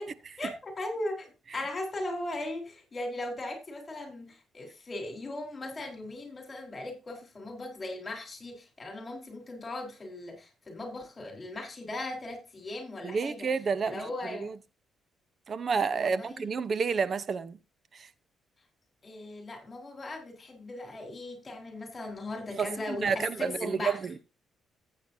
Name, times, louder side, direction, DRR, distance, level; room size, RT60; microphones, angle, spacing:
voice 1, 0.0-13.5 13.9-14.5 15.9-16.5 19.0-24.0, left 2 dB, 30° left, 4.2 m, -38 dB
voice 2, 13.0-14.0 14.3-14.5 15.5-17.6 17.9-18.1 22.6-24.2, right 5 dB, 45° right, 0.8 m, -30 dB
14.5 x 8.6 x 2.7 m
cardioid pair, 90°, 0 cm